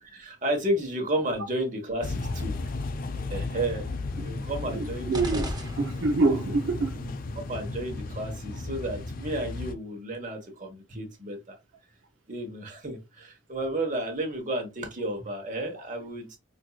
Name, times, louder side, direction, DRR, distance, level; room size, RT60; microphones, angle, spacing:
voice 1, 0.0-2.5 3.3-3.9 4.2-5.5 7.0-7.1 7.5-11.6 12.3-16.4, right 1 dB, 45° right, 1.1 m, -32 dB
sound 1, 2.0-9.8, left 3 dB, 50° left, 0.5 m, -34 dB
voice 2, 4.7-7.0, right 3 dB, 85° right, 0.6 m, -26 dB
sound 2, 5.1-6.4, right 1 dB, 20° right, 0.6 m, -36 dB
4.5 x 2.6 x 2.3 m
head